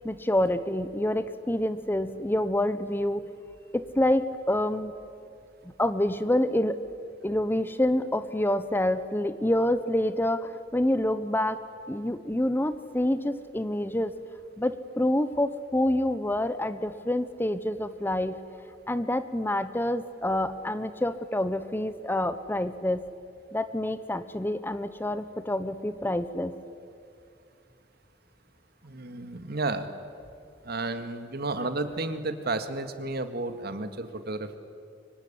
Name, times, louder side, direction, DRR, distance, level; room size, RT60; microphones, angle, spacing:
voice 1, 0.0-3.2 3.7-4.9 5.8-6.8 7.2-11.6 11.9-14.1 14.6-18.4 18.9-23.0 23.5-26.5, left 1 dB, 10° left, 12 dB, 0.8 m, -27 dB
voice 2, 28.8-29.9 30.6-34.6, right 2 dB, 60° right, 9 dB, 1.9 m, -32 dB
24.5 x 24.0 x 10.0 m, 2.4 s
head